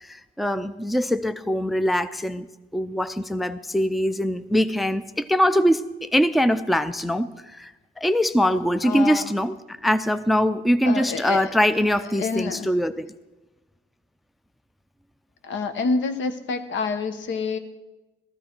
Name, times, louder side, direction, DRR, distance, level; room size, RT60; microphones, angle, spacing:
voice 1, 0.0-2.5 2.7-13.1, equal, ahead, 12 dB, 0.4 m, -23 dB
voice 2, 8.8-9.3 10.8-11.5 12.2-12.7 15.4-17.6, left 4 dB, 70° left, 9 dB, 1.0 m, -27 dB
13.5 x 13.0 x 4.5 m, 1.1 s
cardioid pair, 90°, 20 cm